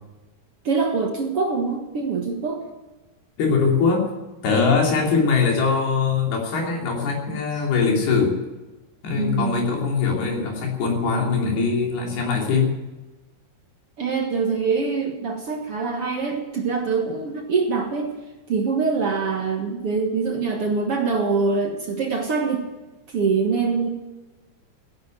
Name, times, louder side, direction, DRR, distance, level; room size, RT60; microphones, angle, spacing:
voice 1, 0.6-2.7 9.2-9.6 14.0-18.1 18.5-22.6 23.1-23.9, right 4 dB, 50° right, 2 dB, 1.9 m, -24 dB
voice 2, 3.4-4.1 4.4-8.4 9.0-12.7, left 5 dB, 85° left, 0 dB, 5.0 m, -21 dB
15.0 x 10.5 x 7.8 m, 1.1 s
omnidirectional pair, 4.4 m